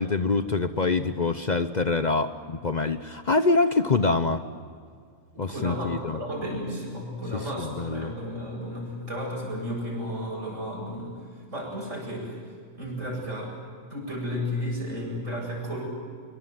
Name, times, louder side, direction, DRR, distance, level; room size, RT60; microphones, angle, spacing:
voice 1, 0.0-4.4 5.4-6.2 7.3-8.1, left 3 dB, 40° left, 10 dB, 0.9 m, -25 dB
voice 2, 5.3-11.2 11.5-12.4 12.7-13.6 13.9-15.8, equal, 70° right, -1 dB, 8.6 m, -33 dB
25.5 x 23.5 x 7.9 m, 2.1 s
omnidirectional pair, 1.3 m